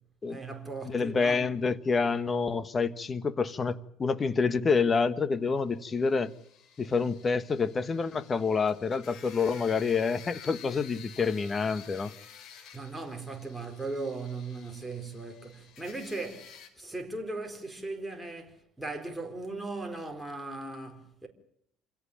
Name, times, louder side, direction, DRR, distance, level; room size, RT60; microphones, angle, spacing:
voice 1, 0.3-1.5 12.7-21.3, right 3 dB, 5° right, 4.4 m, -38 dB
voice 2, 0.8-6.3 6.8-12.1, left 5 dB, 25° left, 1.5 m, -28 dB
sound 1, 5.8-16.7, left 8 dB, 55° left, 4.9 m, -51 dB
28.0 x 17.0 x 8.5 m
cardioid pair, 125°, 0 cm